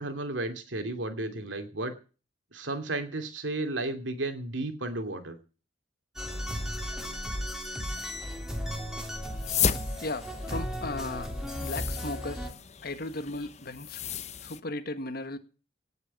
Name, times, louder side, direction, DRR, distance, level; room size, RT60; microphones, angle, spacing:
voice 1, 0.0-1.9 2.5-5.4, right 2 dB, 85° right, 7 dB, 2.6 m, -33 dB
sound 1, 6.2-12.5, equal, 5° right, 3.2 m, -35 dB
sound 2, 9.2-14.6, left 7 dB, 35° left, 0.8 m, -34 dB
voice 2, 10.0-12.5 12.8-14.0 14.4-15.4, left 2 dB, 55° left, 10 dB, 1.6 m, -36 dB
18.0 x 6.7 x 8.4 m, 0.37 s
head